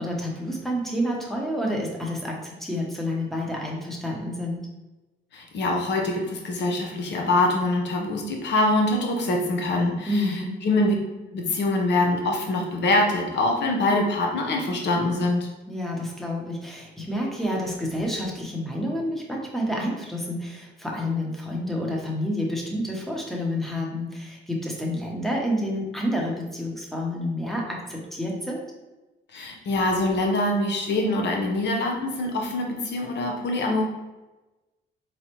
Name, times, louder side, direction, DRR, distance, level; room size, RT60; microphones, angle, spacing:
voice 1, 0.0-4.7 10.1-10.6 15.7-28.6, left 1 dB, ahead, -2 dB, 1.0 m, -29 dB
voice 2, 5.3-10.3 10.6-10.9 11.3-15.5 29.3-33.8, left 2 dB, 65° left, 1 dB, 0.9 m, -24 dB
4.1 x 3.2 x 3.0 m, 1.1 s
cardioid pair, 90°, 20 cm